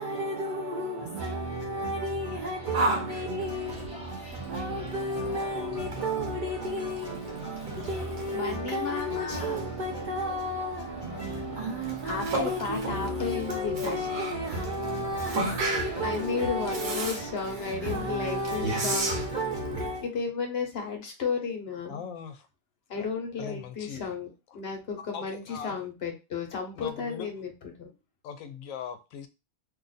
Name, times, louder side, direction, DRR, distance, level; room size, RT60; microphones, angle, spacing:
voice 1, 0.0-20.1, equal, 50° right, 0.6 m, -32 dB
sound 1, 2.5-19.2, equal, 5° right, 0.7 m, -46 dB
Yell, 2.7-19.9, right 2 dB, 75° right, 1.2 m, -36 dB
voice 2, 8.3-9.7 12.1-14.1 16.0-19.3 20.0-22.0 22.9-24.3 24.5-27.5 27.8-27.9, left 5 dB, 55° left, 1.0 m, -33 dB
voice 3, 21.9-22.5 23.0-23.1 23.4-24.1 24.5-24.6 25.0-25.9 26.8-27.3 28.2-29.3, left 7 dB, 80° left, 1.0 m, -40 dB
2.8 x 2.4 x 3.9 m
omnidirectional pair, 1.4 m